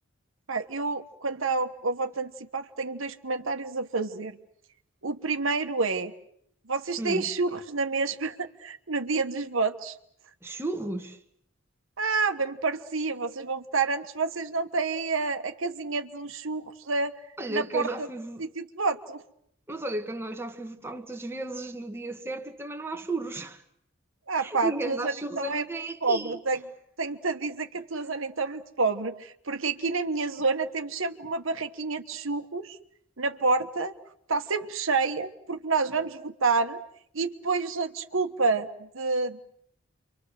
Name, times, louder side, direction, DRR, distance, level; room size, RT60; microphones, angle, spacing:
voice 1, 0.5-4.4 5.0-6.1 6.7-9.9 12.0-17.1 17.5-17.8 18.4-19.2 24.3-25.7 26.0-26.6 27.0-32.8 33.2-33.9 34.3-36.8 37.1-39.4, right 4 dB, 70° right, 1.4 m, -29 dB
voice 2, 10.4-11.2 17.4-18.4 19.7-23.6 24.4-26.4, right 2 dB, 10° right, 1.6 m, -34 dB
29.5 x 25.0 x 6.6 m
head